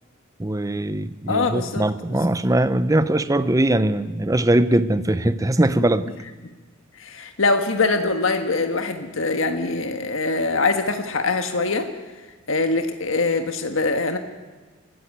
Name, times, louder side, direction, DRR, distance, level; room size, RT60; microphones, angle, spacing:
voice 1, 0.4-6.1, right 1 dB, 15° right, 14 dB, 0.7 m, -21 dB
voice 2, 1.3-1.8 5.8-5.9 7.0-11.9 12.5-14.2, left 3 dB, 70° left, 6 dB, 1.5 m, -23 dB
24.0 x 14.5 x 9.5 m, 1.3 s
head